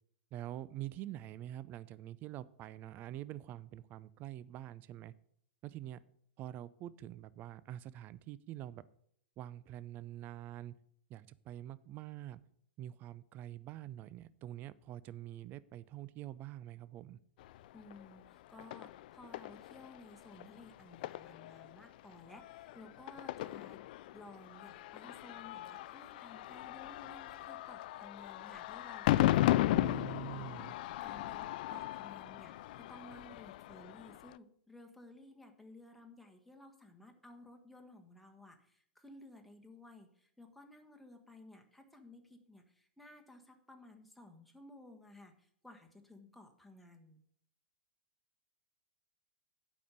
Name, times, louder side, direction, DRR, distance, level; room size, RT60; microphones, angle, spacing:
voice 1, 0.3-5.1 5.6-6.0 6.4-8.8 9.4-10.7 11.1-12.4 12.8-17.2 29.7-30.7, right 13 dB, 35° right, 18 dB, 0.4 m, -46 dB
sound 1, 17.4-34.4, left 15 dB, 55° left, 0.3 m, -37 dB
voice 2, 17.7-23.8 24.1-30.0 30.3-30.7 31.0-47.2, left 2 dB, ahead, 2 dB, 1.3 m, -56 dB
8.4 x 5.4 x 7.9 m, 0.67 s
figure-of-eight pair, 100°, 6 cm